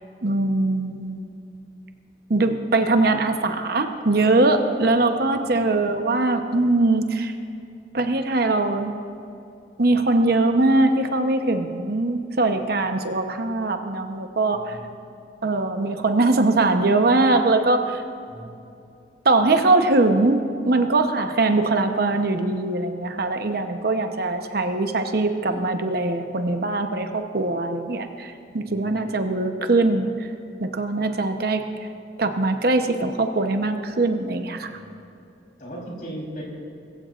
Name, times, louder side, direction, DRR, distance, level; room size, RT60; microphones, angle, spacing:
voice 1, 0.2-1.3 2.3-7.3 7.9-8.9 9.8-14.8 15.4-18.0 19.2-30.3 30.6-31.6 32.2-34.7, right 2 dB, 60° right, 6 dB, 0.9 m, -21 dB
voice 2, 5.2-5.8 14.5-14.8 18.3-18.6 28.6-29.0 34.6-34.9 35.6-36.4, right 1 dB, 50° left, -3 dB, 3.8 m, -38 dB
22.0 x 15.0 x 2.5 m, 2.5 s
head